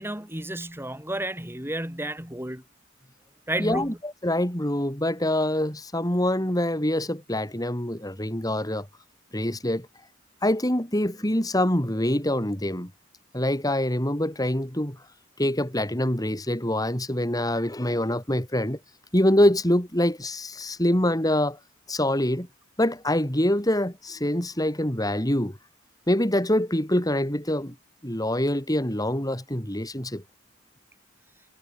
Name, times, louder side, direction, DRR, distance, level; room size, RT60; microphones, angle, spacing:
voice 1, 0.0-2.6 3.5-4.0, right 1 dB, 10° right, 8.0 m, -32 dB
voice 2, 3.6-8.9 9.3-9.9 10.4-12.9 13.3-15.0 15.4-18.8 19.1-21.6 21.9-22.5 22.8-25.6 26.1-27.7 28.0-30.2, left 1 dB, 20° left, 4.8 m, -25 dB
head